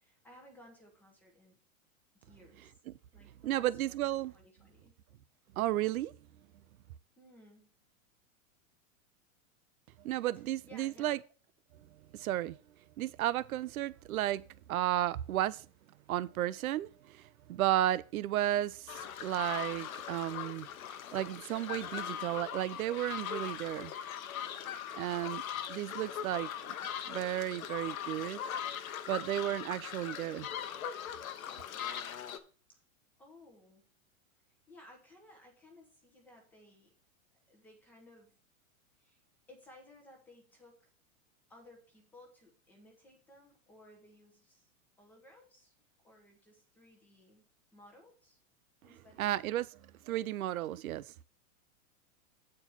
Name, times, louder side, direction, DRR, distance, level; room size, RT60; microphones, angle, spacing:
voice 1, 0.0-1.6 2.1-2.8 3.1-4.9 7.2-7.7 10.6-11.2 32.7-32.8 33.2-33.8 34.7-36.9 37.5-38.4 39.0-39.2 39.5-40.9 41.5-44.7 45.0-45.7 46.0-48.4 48.8-49.3, left 1 dB, 5° left, 0.9 m, -58 dB
voice 2, 3.4-4.3 5.6-6.1 10.0-11.2 12.1-12.6 13.0-14.4 14.7-15.7 16.1-20.7 21.1-23.9 25.0-25.4 25.7-26.7 27.1-28.4 29.1-30.5 49.2-51.0, right 13 dB, 80° right, 0.7 m, -33 dB
sound 1, 18.9-32.4, left 9 dB, 75° left, 1.1 m, -40 dB
8.6 x 4.6 x 5.7 m
supercardioid pair, 175°, 42 cm